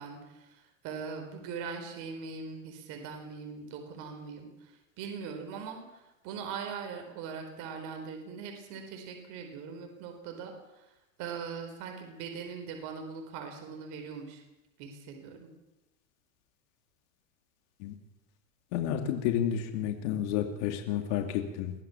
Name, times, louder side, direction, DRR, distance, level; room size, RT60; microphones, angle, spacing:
voice 1, 0.0-10.9 11.2-14.4 14.8-15.5, right 6 dB, 45° right, 4 dB, 4.6 m, -41 dB
voice 2, 18.7-21.7, left 10 dB, 60° left, 5 dB, 2.8 m, -30 dB
23.0 x 16.0 x 7.2 m, 0.96 s
supercardioid pair, 135°, 40 cm